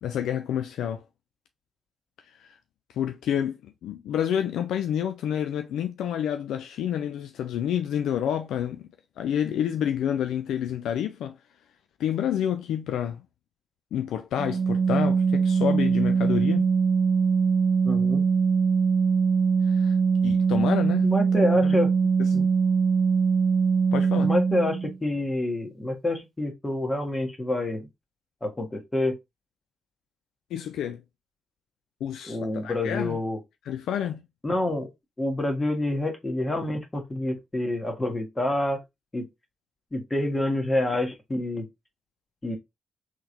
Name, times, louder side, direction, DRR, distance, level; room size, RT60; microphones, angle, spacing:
voice 1, 0.0-1.0 2.4-2.5 3.0-8.9 9.2-11.4 12.0-13.2 13.9-16.7 19.7-20.0 20.2-21.1 21.6-21.8 22.2-22.3 23.9-24.3 30.5-31.0 32.0-33.2 33.7-34.2, left 9 dB, 70° left, 0.3 m, -29 dB
Organ, 14.4-25.0, right 5 dB, 50° right, 0.3 m, -22 dB
voice 2, 17.8-18.2 21.0-21.9 22.3-22.5 24.2-27.9 28.4-29.2 32.2-33.4 34.4-34.9 35.2-38.8 39.1-39.3 39.9-41.7 42.4-42.6, left 1 dB, 25° left, 1.4 m, -27 dB
3.7 x 3.1 x 2.5 m
hypercardioid pair, 40°, 0 cm